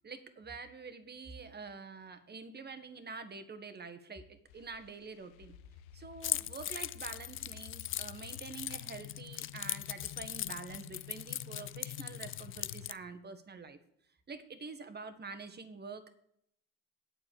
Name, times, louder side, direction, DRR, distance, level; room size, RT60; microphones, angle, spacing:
voice 1, 0.0-5.6 5.9-13.8 14.3-16.1, right 4 dB, 25° right, 10 dB, 1.6 m, -46 dB
sound 1, 4.5-12.9, left 11 dB, 85° left, 1.0 m, -50 dB
Keys jangling, 6.2-13.0, left 12 dB, 35° left, 0.5 m, -39 dB
8.7 x 6.7 x 8.3 m, 0.74 s
supercardioid pair, 95°, 39 cm